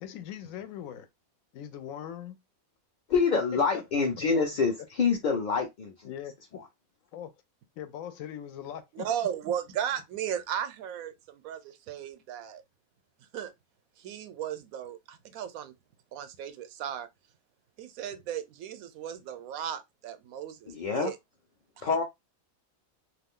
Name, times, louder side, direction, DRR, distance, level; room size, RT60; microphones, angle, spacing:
voice 1, 0.0-1.1 1.5-2.4 4.2-4.6 6.0-6.6 7.1-7.3 7.8-9.1, left 10 dB, 75° left, 1.0 m, -41 dB
voice 2, 3.1-6.1 6.5-6.7 20.7-21.1 21.8-22.0, left 5 dB, 55° left, 0.5 m, -26 dB
voice 3, 8.9-12.6 13.3-13.5 14.0-15.7 16.1-17.1 17.8-21.2 21.8-21.9, right 9 dB, 90° right, 1.0 m, -36 dB
2.5 x 2.4 x 3.6 m
omnidirectional pair, 1.5 m